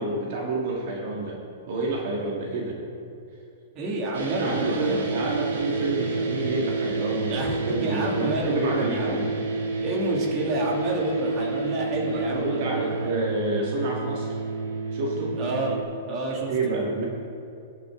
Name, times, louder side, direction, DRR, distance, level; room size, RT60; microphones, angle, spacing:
voice 1, 0.0-1.4 1.7-2.8 4.3-9.3 12.0-14.4 14.9-15.3 16.5-17.0, right 2 dB, 50° right, -3 dB, 1.9 m, -29 dB
voice 2, 3.7-5.0 7.3-9.2 9.8-13.2 15.3-15.8 16.1-16.5, right 1 dB, 30° right, -2 dB, 2.4 m, -29 dB
sound 1, 4.1-15.8, right 3 dB, 80° right, 2.4 m, -29 dB
18.5 x 6.7 x 3.8 m, 2.6 s
hypercardioid pair, 155°, 0 cm